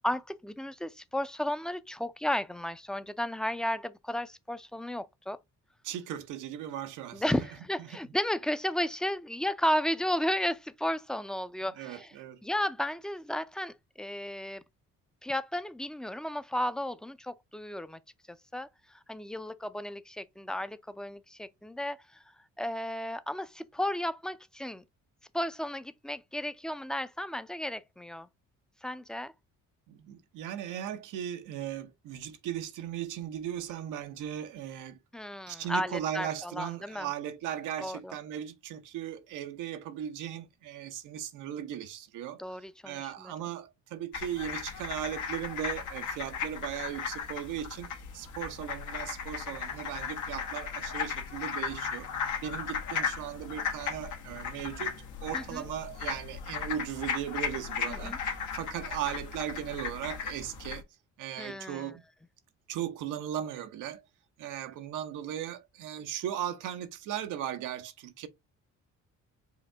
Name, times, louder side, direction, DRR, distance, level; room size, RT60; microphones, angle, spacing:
voice 1, 0.0-5.4 7.1-12.1 12.4-14.6 15.2-18.0 18.3-18.7 19.1-22.0 22.6-24.8 25.3-28.3 28.8-29.3 35.1-37.1 37.8-38.1 42.4-43.3 55.3-55.6 57.9-58.2 61.4-61.9, left 1 dB, ahead, 0.4 m, -33 dB
voice 2, 5.8-7.3 7.8-8.0 11.8-12.4 29.9-35.0 35.5-42.6 42.8-52.1 52.4-60.8 61.2-62.0 62.7-64.0 64.4-68.3, right 10 dB, 90° right, 0.8 m, -37 dB
sound 1, 44.1-60.8, left 6 dB, 80° left, 1.2 m, -36 dB
5.0 x 2.7 x 3.3 m
cardioid pair, 90°, 30 cm